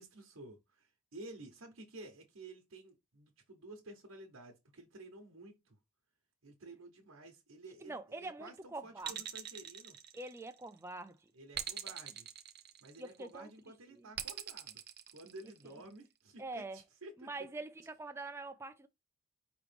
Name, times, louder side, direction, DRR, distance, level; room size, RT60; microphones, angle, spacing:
voice 1, 0.0-5.8 6.4-10.0 11.3-12.3 12.8-14.8 15.1-17.3, right 2 dB, 90° right, 1.0 m, -52 dB
voice 2, 7.8-9.2 10.1-11.2 11.8-11.9 13.0-13.5 13.9-14.1 16.4-16.8 17.2-18.9, right 2 dB, 10° right, 0.3 m, -44 dB
sound 1, 9.0-10.7 11.5-13.2 14.2-15.8, right 10 dB, 50° right, 0.6 m, -43 dB
5.0 x 3.1 x 3.4 m
head